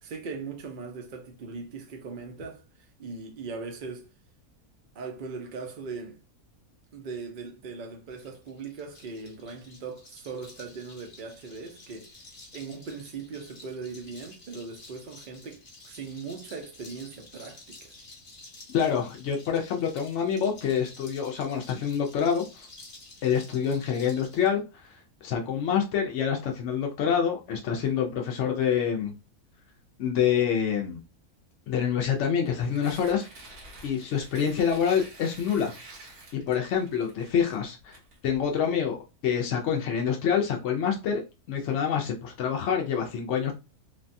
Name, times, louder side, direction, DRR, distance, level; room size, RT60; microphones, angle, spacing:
voice 1, 0.0-2.6 3.0-4.1 4.9-6.2 6.9-12.1 12.5-17.9, right 4 dB, 55° right, 0.6 m, -39 dB
sound 1, 8.1-24.5, left 2 dB, 40° left, 0.9 m, -51 dB
voice 2, 18.7-22.7 23.2-29.1 30.0-31.0 31.7-33.3 33.8-35.7 36.3-38.0 38.2-39.0 39.2-41.2 41.5-43.5, left 7 dB, 65° left, 0.7 m, -27 dB
Tearing, 32.4-38.6, right 2 dB, 80° right, 1.4 m, -49 dB
3.2 x 2.2 x 2.5 m
omnidirectional pair, 1.6 m